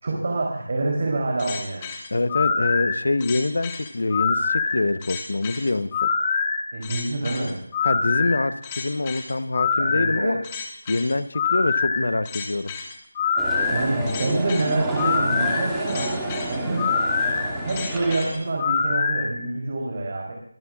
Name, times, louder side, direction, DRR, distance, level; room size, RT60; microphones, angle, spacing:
voice 1, 0.0-1.8 6.7-7.6 9.8-10.3 13.7-16.1 16.5-16.9 17.6-20.3, right 2 dB, 40° right, -1 dB, 3.3 m, -26 dB
sound 1, 1.4-19.3, left 5 dB, 15° left, 1.6 m, -25 dB
voice 2, 2.1-6.1 7.8-10.4 10.9-12.7, left 2 dB, 60° left, 13 dB, 0.9 m, -25 dB
sound 2, 13.4-18.6, right 1 dB, 5° right, 2.1 m, -30 dB
23.5 x 13.5 x 2.4 m, 0.65 s
figure-of-eight pair, 175°, 0 cm